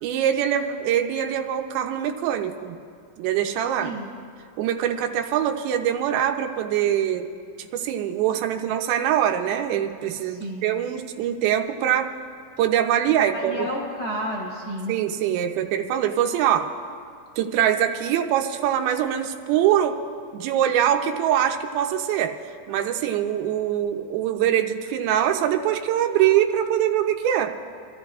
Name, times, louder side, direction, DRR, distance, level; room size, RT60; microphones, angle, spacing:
voice 1, 0.0-2.8 3.2-3.9 4.6-7.3 7.6-12.1 12.6-13.7 14.9-16.7 17.4-20.0 20.3-22.3 22.7-27.5, right 10 dB, 90° right, 5 dB, 2.6 m, -23 dB
voice 2, 10.3-10.7 13.3-14.9, equal, 40° left, -5 dB, 2.5 m, -31 dB
26.5 x 13.5 x 2.4 m, 2.2 s
omnidirectional pair, 4.2 m